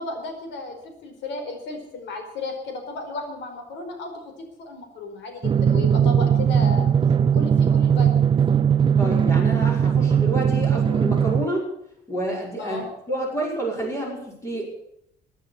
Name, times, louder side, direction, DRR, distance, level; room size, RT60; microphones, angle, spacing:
voice 1, 0.0-4.1 4.4-6.9 7.3-8.4 12.6-12.8, left 2 dB, 80° left, 5 dB, 4.6 m, -34 dB
Drum, 5.4-11.4, right 8 dB, 30° right, 0.5 m, -19 dB
voice 2, 9.0-11.6 12.1-14.7, right 1 dB, 15° left, -1 dB, 5.7 m, -29 dB
16.0 x 9.7 x 8.5 m, 0.75 s
cardioid pair, 165°, 18 cm